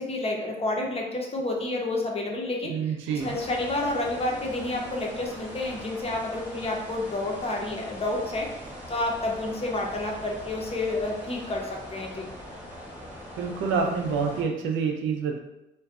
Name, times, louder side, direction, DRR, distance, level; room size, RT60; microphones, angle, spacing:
voice 1, 0.0-2.7 3.1-8.5 8.9-12.3, left 2 dB, 30° left, 0 dB, 0.5 m, -29 dB
voice 2, 2.6-3.4 13.4-15.4, right 5 dB, 80° right, 2 dB, 0.4 m, -27 dB
sound 1, 3.2-14.4, equal, 5° right, 1.0 m, -41 dB
2.5 x 2.1 x 2.3 m, 0.92 s
cardioid pair, 90°, 20 cm